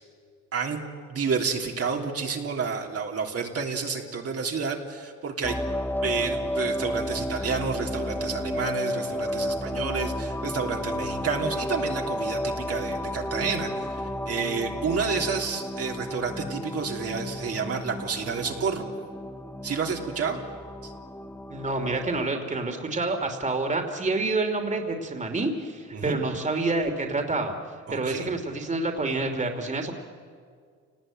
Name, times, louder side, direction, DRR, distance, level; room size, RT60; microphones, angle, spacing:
voice 1, 0.5-5.6 6.0-18.9 19.6-20.4 20.8-20.9 25.9-26.2 27.9-28.3, right 5 dB, 50° right, 1 dB, 3.2 m, -30 dB
sound 1, 5.4-22.3, left 1 dB, 5° left, 1.1 m, -32 dB
voice 2, 21.5-27.5 27.9-29.9, right 3 dB, 25° right, 5 dB, 2.9 m, -28 dB
28.5 x 19.5 x 9.1 m, 2.1 s
cardioid pair, 90°, 30 cm